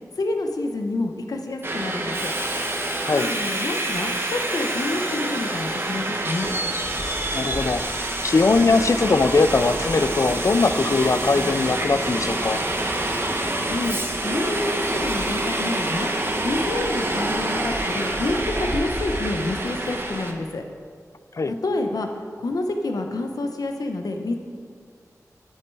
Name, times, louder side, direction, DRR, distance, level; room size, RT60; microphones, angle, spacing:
voice 1, 0.2-2.3 3.1-6.5 13.7-16.1 16.4-20.6 21.5-22.1 22.4-24.4, left 2 dB, 85° left, 4 dB, 0.9 m, -28 dB
Subway metro underground, 1.6-20.3, right 1 dB, 40° right, 1.3 m, -27 dB
voice 2, 3.0-3.3 7.3-12.6 21.4-21.5, left 3 dB, 55° left, 12 dB, 0.5 m, -21 dB
10.5 x 8.6 x 4.7 m, 2.1 s
wide cardioid pair, 60°, 6 cm